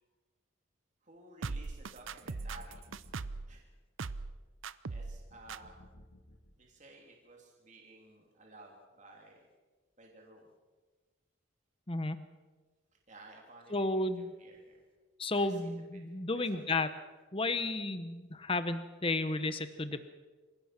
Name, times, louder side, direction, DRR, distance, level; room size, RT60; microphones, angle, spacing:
voice 1, 1.0-2.9 3.5-3.7 4.9-5.8 6.6-9.5 10.0-10.5 13.1-14.1 14.4-14.8 15.4-16.0 16.3-16.6, right 2 dB, 35° right, 0 dB, 3.0 m, -55 dB
sound 1, 1.4-3.5 4.0-4.4 4.6-5.2 5.5-5.6, right 4 dB, 70° right, 0.7 m, -39 dB
sound 2, 1.9-3.5 5.0-6.8, equal, 70° left, 2.7 m, -57 dB
voice 2, 11.9-12.2 13.7-14.3 15.2-16.9 17.3-20.1, left 2 dB, 25° left, 11 dB, 0.9 m, -33 dB
26.5 x 16.5 x 6.0 m, 1.3 s
head